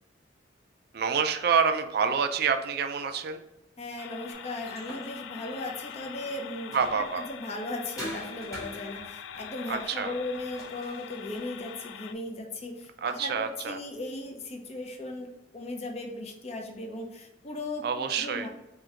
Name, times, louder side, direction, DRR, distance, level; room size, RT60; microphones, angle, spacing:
voice 1, 0.9-3.4 6.7-7.2 9.7-10.1 13.0-13.8 17.8-18.5, right 6 dB, 55° right, 8 dB, 0.4 m, -27 dB
voice 2, 3.8-17.8 18.2-18.5, left 2 dB, 35° left, 1 dB, 0.6 m, -37 dB
sound 1, 4.0-12.1, left 8 dB, 85° left, 0.3 m, -44 dB
sound 2, 4.3-7.3 8.0-11.8, equal, 20° left, 1.4 m, -45 dB
3.7 x 2.7 x 4.4 m, 0.95 s
head